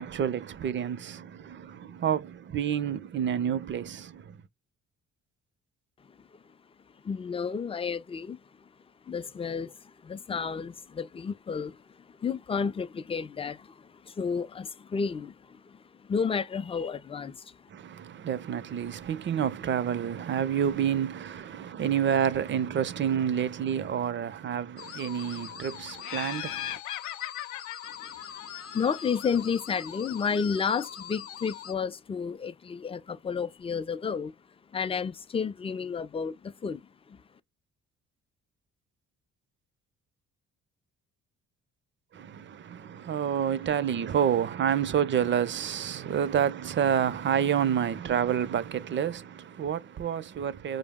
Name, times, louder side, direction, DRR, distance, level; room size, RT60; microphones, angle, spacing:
voice 1, 0.0-4.4 17.7-26.8 42.1-50.8, right 8 dB, 40° right, 0.5 m, -29 dB
voice 2, 7.0-8.4 9.1-11.8 12.1-17.6 28.0-28.1 28.4-34.4 34.7-37.2, left 6 dB, 20° left, 0.3 m, -32 dB
sound 1, 24.8-31.7, left 8 dB, 50° left, 0.8 m, -43 dB
Laughter, 26.0-29.3, left 13 dB, 80° left, 0.5 m, -39 dB
4.9 x 2.0 x 3.5 m
cardioid pair, 90°, 30 cm